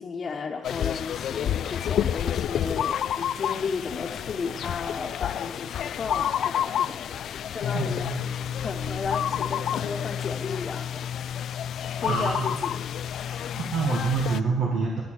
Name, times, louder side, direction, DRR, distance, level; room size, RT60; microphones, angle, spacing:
voice 1, 0.0-8.1 8.6-11.2 12.0-12.9 13.4-13.6, left 5 dB, 45° left, -1 dB, 1.2 m, -34 dB
sound 1, 0.6-14.4, left 9 dB, 65° left, 0.3 m, -29 dB
sound 2, 5.9-12.8, right 2 dB, 25° right, 3.0 m, -48 dB
voice 2, 7.7-8.1 12.1-12.5 13.2-15.0, right 4 dB, 85° right, -2 dB, 1.9 m, -27 dB
11.0 x 9.6 x 6.6 m, 1.1 s
cardioid pair, 85°, 0 cm